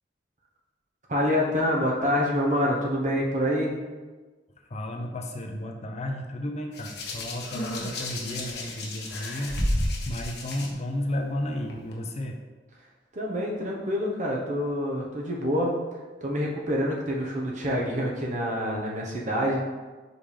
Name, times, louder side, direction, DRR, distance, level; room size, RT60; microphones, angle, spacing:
voice 1, 1.1-3.7 13.1-15.8 16.2-19.6, equal, 45° right, -2 dB, 1.1 m, -26 dB
voice 2, 4.7-9.6 10.1-12.4, left 1 dB, 40° left, 3 dB, 0.6 m, -33 dB
Hands, 6.7-10.7 11.7-11.9, left 1 dB, 65° left, 1.0 m, -31 dB
5.3 x 3.6 x 4.9 m, 1.3 s
head